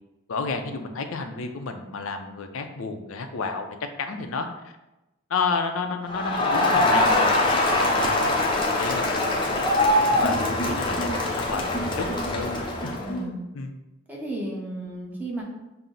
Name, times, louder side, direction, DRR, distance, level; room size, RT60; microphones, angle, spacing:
voice 1, 0.3-4.7 5.3-7.3 7.8-12.1 12.3-12.5 12.8-13.7, left 4 dB, 75° left, 6 dB, 0.5 m, -31 dB
Crowd, 6.1-13.1, left 1 dB, 25° left, 0.5 m, -23 dB
voice 2, 13.0-13.4 14.1-15.4, right 1 dB, 10° right, -3 dB, 0.7 m, -33 dB
5.6 x 2.0 x 3.8 m, 0.98 s
head